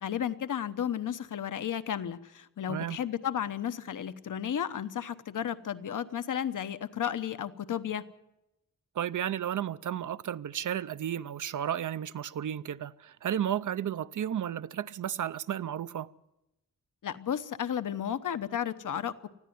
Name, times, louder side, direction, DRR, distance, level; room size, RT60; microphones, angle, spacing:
voice 1, 0.0-8.0 17.0-19.3, left 9 dB, 75° left, 1.0 m, -33 dB
voice 2, 9.0-16.1, right 10 dB, 70° right, 0.6 m, -33 dB
20.0 x 14.5 x 9.3 m
wide cardioid pair, 160°, 32 cm